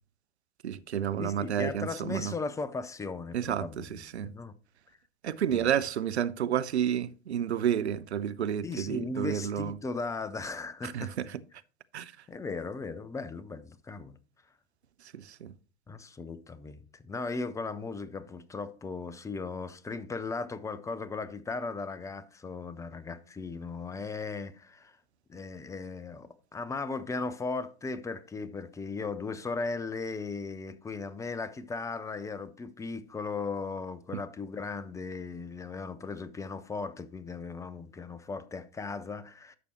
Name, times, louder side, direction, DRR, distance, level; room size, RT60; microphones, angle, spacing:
voice 1, 0.6-2.3 3.3-4.3 5.2-9.8 10.8-11.4 11.9-12.1 15.0-15.5 34.1-34.2, right 9 dB, 75° right, 0.6 m, -31 dB
voice 2, 1.2-4.5 5.5-5.7 8.6-11.2 12.3-14.2 15.9-25.0 25.3-39.6, left 4 dB, 10° left, 0.6 m, -37 dB
11.0 x 6.8 x 2.9 m
figure-of-eight pair, 90°, 33 cm